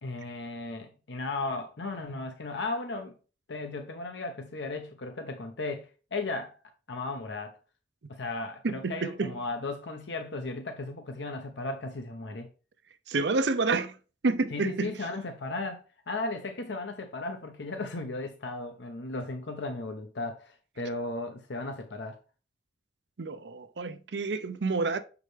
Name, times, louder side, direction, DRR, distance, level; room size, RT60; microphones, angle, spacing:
voice 1, 0.0-3.1 3.5-6.6 6.9-7.6 8.1-12.5 14.5-22.2, left 2 dB, 75° left, 0.8 m, -36 dB
voice 2, 8.6-9.3 13.1-14.0 14.2-15.0 23.2-25.0, right 3 dB, 70° right, 0.6 m, -29 dB
6.6 x 4.8 x 3.2 m
head